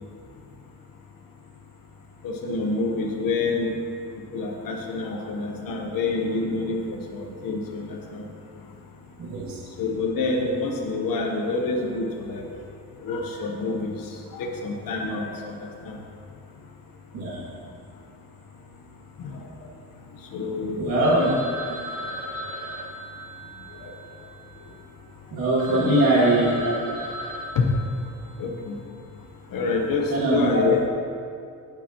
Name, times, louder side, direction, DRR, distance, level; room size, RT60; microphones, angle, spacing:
voice 1, 2.2-3.7 4.3-7.9 8.1-8.2 9.8-12.4 13.0-13.9 14.3-15.3 15.9-16.0 20.3-21.4 23.8-23.9 25.7-26.3 27.6-27.7 28.4-28.8 29.5-30.8, left 3 dB, 80° left, 1 dB, 1.1 m, -27 dB
voice 2, 9.2-9.6 17.1-17.4 20.8-21.3 21.7-21.8 25.3-26.7 30.1-30.7, right 2 dB, 90° right, -7 dB, 2.5 m, -22 dB
Telephone, 21.0-24.8 25.3-25.4 25.6-28.5, right 1 dB, 65° right, 1.5 m, -37 dB
17.0 x 6.9 x 3.0 m, 2.4 s
cardioid pair, 140°, 34 cm